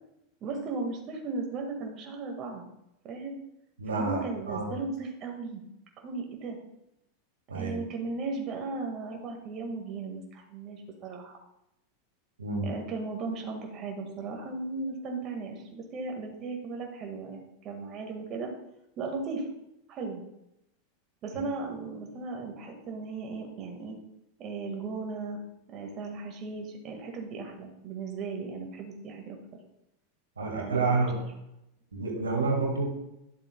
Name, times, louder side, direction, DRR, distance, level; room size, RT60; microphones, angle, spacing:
voice 1, 0.4-2.6 3.0-3.3 3.9-5.6 6.0-6.6 7.5-11.4 12.6-18.5 19.0-19.5 19.9-20.2 21.2-24.0 24.4-25.4 25.7-29.4 30.5-31.3, right 3 dB, 40° right, 1 dB, 1.8 m, -36 dB
voice 2, 3.8-4.7 7.5-7.8 12.4-12.7 30.4-31.2 31.9-32.9, right 3 dB, 85° right, 0 dB, 1.9 m, -29 dB
12.5 x 7.4 x 2.3 m, 0.85 s
hypercardioid pair, 95°, 0 cm